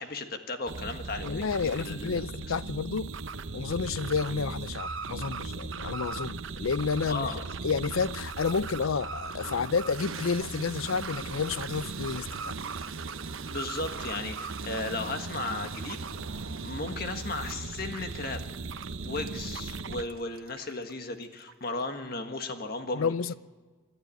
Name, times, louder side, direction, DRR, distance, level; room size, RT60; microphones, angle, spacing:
voice 1, 0.0-2.2 7.1-7.4 13.5-16.0 16.6-18.4 19.0-23.1, left 2 dB, 45° left, 1.6 m, -35 dB
sound 1, 0.7-20.0, right 4 dB, 65° right, 0.8 m, -38 dB
voice 2, 1.2-3.1 3.5-12.6 22.9-23.3, left 5 dB, 80° left, 0.5 m, -30 dB
Toilet flush, 8.6-8.7 9.3-21.8, right 6 dB, 85° right, 1.2 m, -47 dB
27.5 x 12.0 x 9.1 m
head